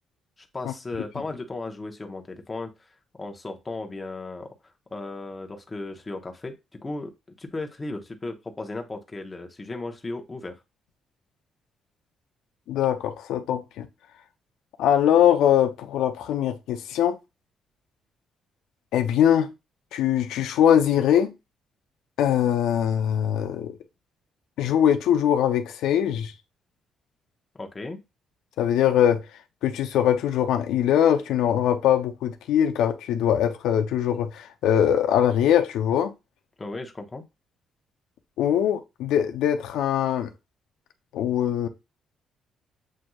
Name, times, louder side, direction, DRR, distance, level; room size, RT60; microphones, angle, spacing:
voice 1, 0.4-2.9 3.2-4.5 4.9-6.5 6.8-7.1 7.4-10.6 27.6-28.0 36.6-37.2, left 2 dB, 25° left, 1.0 m, -35 dB
voice 2, 12.7-13.9 14.8-17.2 18.9-19.5 19.9-21.3 22.2-23.8 24.6-26.3 28.6-29.2 29.6-36.1 38.4-40.3 41.1-41.7, left 10 dB, 90° left, 0.6 m, -22 dB
7.5 x 2.6 x 2.3 m
cardioid pair, 90°, 0 cm